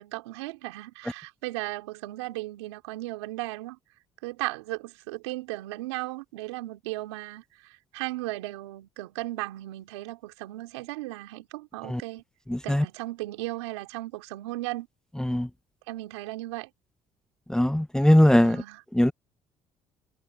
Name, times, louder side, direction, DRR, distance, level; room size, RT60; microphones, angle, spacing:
voice 1, 0.0-3.8 4.2-12.2 12.6-14.9 15.9-16.7 18.4-18.8, right 19 dB, 90° right, 3.4 m, -36 dB
voice 2, 12.5-12.8 15.2-15.5 17.5-18.6 18.9-19.1, left 1 dB, 5° left, 0.8 m, -20 dB
hypercardioid pair, 60°, 14 cm